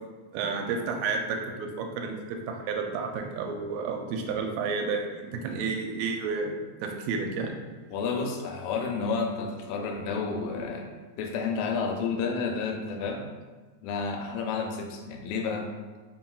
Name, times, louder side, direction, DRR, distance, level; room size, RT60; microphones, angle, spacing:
voice 1, 0.3-7.5, right 4 dB, 80° right, 3 dB, 1.7 m, -31 dB
voice 2, 7.9-10.9 11.2-13.3 13.8-15.7, left 5 dB, 80° left, 2 dB, 1.8 m, -30 dB
4.3 x 3.5 x 2.3 m, 1.3 s
omnidirectional pair, 3.4 m